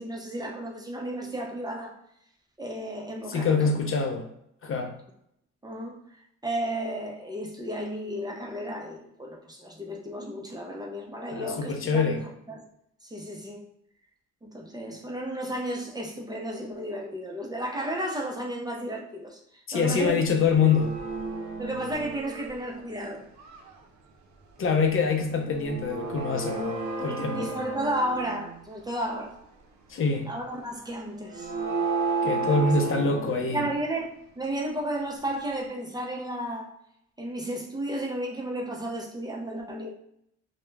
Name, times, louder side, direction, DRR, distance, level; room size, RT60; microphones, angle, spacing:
voice 1, 0.0-1.9 2.6-3.7 5.6-6.0 6.4-12.2 12.5-12.6 13.0-13.6 14.4-20.4 21.6-23.2 27.0-29.3 30.2-31.5 32.4-33.0 33.5-36.7 37.2-39.9, right 1 dB, 15° right, -1 dB, 0.5 m, -33 dB
voice 2, 3.3-4.3 4.6-4.9 11.3-12.2 19.7-21.0 24.6-27.5 29.9-30.3 32.2-33.6, left 4 dB, 45° left, 4 dB, 0.5 m, -25 dB
sound 1, 20.0-20.1 20.3-22.9 23.4-23.8 25.5-28.6 29.1-29.2 31.2-33.8, right 4 dB, 70° right, 0.5 m, -32 dB
2.3 x 2.1 x 3.1 m, 0.74 s
cardioid pair, 90°, 30 cm